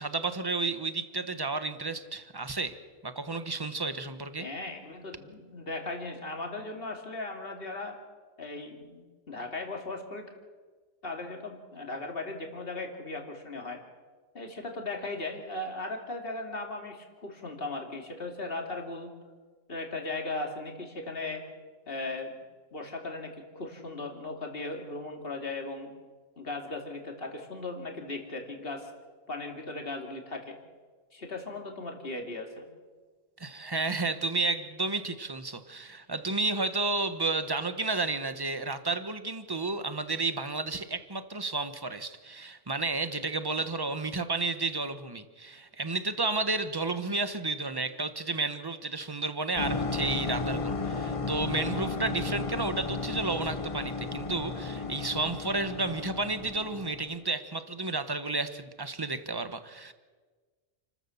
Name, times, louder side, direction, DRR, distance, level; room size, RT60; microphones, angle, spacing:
voice 1, 0.0-2.8 3.0-4.5 33.4-59.9, right 3 dB, 20° right, 11 dB, 1.1 m, -32 dB
voice 2, 4.4-8.0 8.4-10.3 11.0-13.8 14.3-19.1 19.7-21.4 21.9-22.4 22.7-25.9 26.4-28.9 29.3-30.6 31.1-32.7, left 2 dB, 50° left, 2 dB, 2.8 m, -37 dB
sound 1, 49.6-57.2, left 3 dB, 30° left, 0.8 m, -34 dB
29.5 x 13.5 x 7.1 m, 1.4 s
omnidirectional pair, 1.2 m